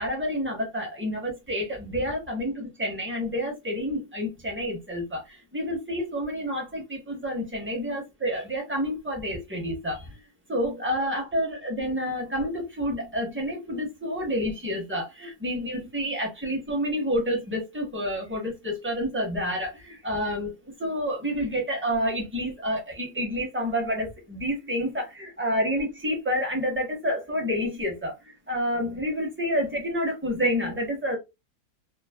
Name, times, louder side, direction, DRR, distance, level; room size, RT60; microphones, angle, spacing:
voice 1, 0.0-10.2 10.5-20.5 20.8-31.2, equal, 15° right, 0.5 m, -29 dB
3.1 x 2.0 x 2.2 m
omnidirectional pair, 1.7 m